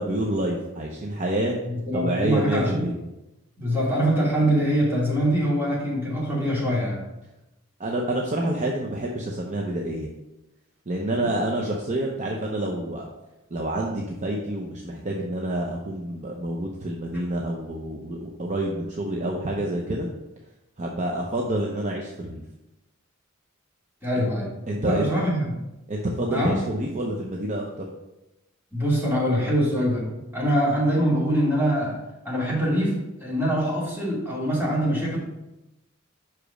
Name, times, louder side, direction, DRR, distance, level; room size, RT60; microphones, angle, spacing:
voice 1, 0.0-1.6 1.9-3.0 7.8-10.1 10.9-13.1 13.5-20.1 20.8-22.4 24.1-24.3 24.7-25.1 25.9-27.9, right 1 dB, 35° right, -1 dB, 0.7 m, -28 dB
voice 2, 1.7-2.8 3.6-7.0 11.2-11.3 24.0-25.5 26.3-26.6 28.7-32.0 32.2-35.2, equal, 10° right, -7 dB, 2.6 m, -24 dB
5.8 x 5.1 x 4.9 m, 0.97 s
head